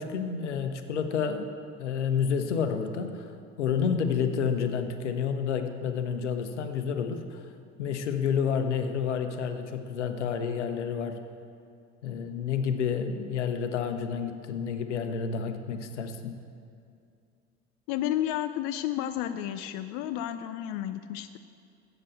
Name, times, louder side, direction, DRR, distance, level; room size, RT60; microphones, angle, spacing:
voice 1, 0.0-1.5 1.8-3.3 3.6-7.4 7.8-11.2 12.0-16.3, left 6 dB, 80° left, 8 dB, 0.8 m, -29 dB
voice 2, 17.9-21.4, left 12 dB, 55° left, 10 dB, 0.5 m, -31 dB
7.9 x 7.5 x 8.2 m, 2.4 s
hypercardioid pair, 65°, 34 cm